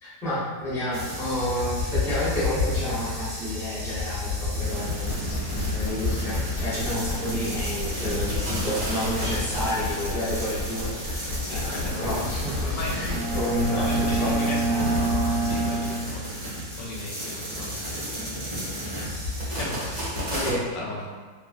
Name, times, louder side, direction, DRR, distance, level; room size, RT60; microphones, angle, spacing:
voice 1, 0.0-5.3 5.7-15.0 20.3-20.6, equal, 5° left, -11 dB, 0.6 m, -30 dB
sound 1, 0.9-20.5, left 1 dB, 30° right, 0.7 m, -31 dB
sound 2, 4.9-14.4, left 2 dB, 65° left, 0.9 m, -32 dB
voice 2, 5.3-5.8 11.4-13.3 13.7-17.8 18.3-18.4 19.6-21.2, left 2 dB, 90° left, -3 dB, 1.3 m, -37 dB
Bowed string instrument, 13.1-16.9, right 3 dB, 75° right, 1.1 m, -27 dB
3.0 x 2.4 x 2.5 m, 1.5 s
omnidirectional pair, 1.8 m